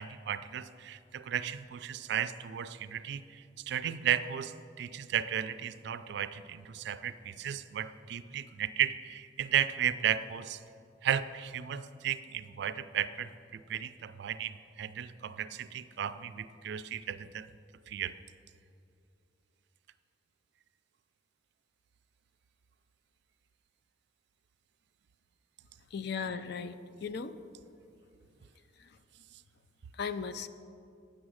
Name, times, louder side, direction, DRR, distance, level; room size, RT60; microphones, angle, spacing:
voice 1, 0.0-10.6 11.0-17.5 17.9-18.1, right 9 dB, 65° right, 14 dB, 0.3 m, -34 dB
voice 2, 25.9-27.3 28.8-28.9 29.9-30.5, left 5 dB, 60° left, 11 dB, 0.4 m, -37 dB
8.9 x 7.2 x 6.3 m, 2.5 s
head